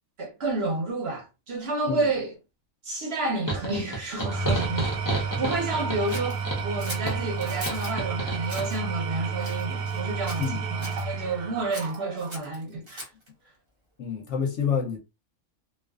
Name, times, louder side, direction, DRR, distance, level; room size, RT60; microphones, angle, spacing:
voice 1, 0.2-2.4 2.8-13.1, right 2 dB, 55° right, 0.9 m, -30 dB
sound 1, 3.5-8.7, right 2 dB, 35° left, 0.3 m, -31 dB
Engine / Tools, 4.1-12.4, right 5 dB, 85° right, 1.1 m, -31 dB
Scissors, 6.1-8.0 8.4-8.8 9.4-10.0 10.3-11.1 11.7-13.3, equal, 35° right, 0.5 m, -40 dB
voice 2, 14.0-15.0, left 6 dB, 65° left, 0.9 m, -28 dB
2.4 x 2.4 x 2.3 m
omnidirectional pair, 1.5 m